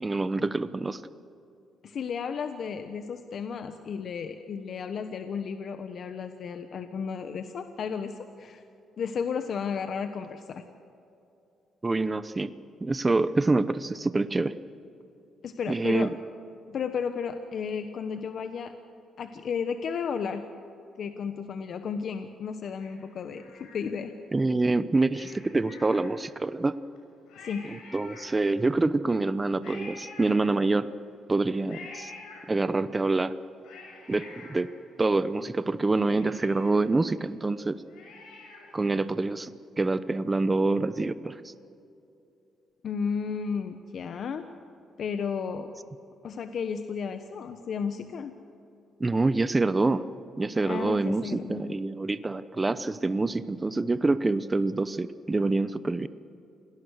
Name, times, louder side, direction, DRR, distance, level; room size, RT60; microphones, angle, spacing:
voice 1, 0.0-1.0 11.8-12.5 12.8-14.5 15.7-16.1 24.3-26.8 27.7-30.9 31.3-32.1 32.5-33.4 34.1-34.7 35.0-37.8 38.7-39.5 39.8-41.5 49.0-50.1 50.4-56.1, right 3 dB, 20° right, 13 dB, 0.8 m, -26 dB
voice 2, 1.8-8.6 9.0-10.6 15.4-16.1 16.7-18.7 19.2-20.4 21.0-24.1 27.4-27.7 42.8-44.4 45.0-45.7 46.2-48.3 50.6-51.7, left 6 dB, 60° left, 8 dB, 1.2 m, -33 dB
Cat, 22.8-24.3 25.1-26.5 27.0-27.1 27.3-28.8 29.6-31.0 31.7-32.9 33.4-35.4 35.7-35.8 36.1-38.9 39.2-39.3, left 3 dB, 85° left, 6.7 m, -48 dB
27.5 x 18.5 x 6.5 m, 2.7 s
cardioid pair, 90°, 0 cm